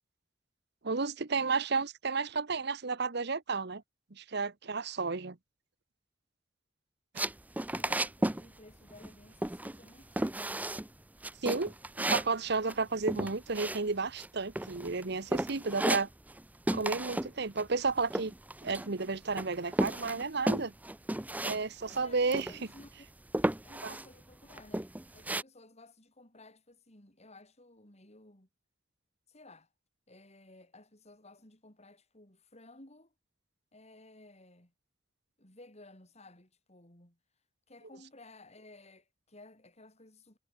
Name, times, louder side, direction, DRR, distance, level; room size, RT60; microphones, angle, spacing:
voice 1, 0.8-3.8 4.2-5.4 11.4-16.1 16.7-18.3 18.6-20.7 21.4-22.5 23.8-23.9, right 4 dB, 60° right, 1.1 m, -32 dB
sound 1, 7.2-8.5 8.7-9.1 9.4-9.9 10.2-10.9 11.2-14.3 14.6-15.0 15.3-16.4 16.7-17.3 17.6-19.0 19.4-21.6 21.9-22.0 22.3-22.9 23.3-24.1 24.5-25.4, right 1 dB, 10° right, 0.6 m, -33 dB
voice 2, 7.7-10.1 21.8-28.5 29.3-29.7 30.1-33.1 33.7-34.7 35.4-37.2 37.7-40.4, left 2 dB, 35° left, 6.8 m, -56 dB
head